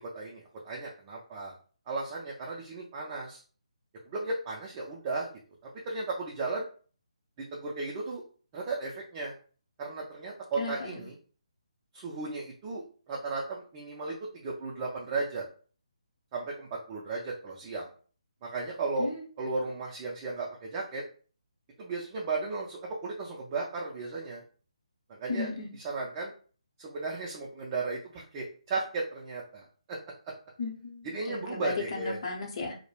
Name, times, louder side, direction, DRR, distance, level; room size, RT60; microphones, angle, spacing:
voice 1, 0.0-1.5 1.9-3.4 4.1-5.3 5.6-6.7 7.5-8.2 8.5-9.3 9.8-11.1 11.9-15.4 16.3-17.9 18.4-19.1 19.4-21.0 21.8-24.4 25.1-25.5 25.8-26.3 26.8-30.0 30.2-30.3 31.0-32.2, right 3 dB, 25° right, -2 dB, 0.4 m, -35 dB
voice 2, 10.6-10.9 19.0-19.2 25.3-25.7 30.6-32.8, left 4 dB, 45° left, 0 dB, 0.7 m, -35 dB
2.1 x 2.0 x 3.1 m, 0.41 s
figure-of-eight pair, 145°, 4 cm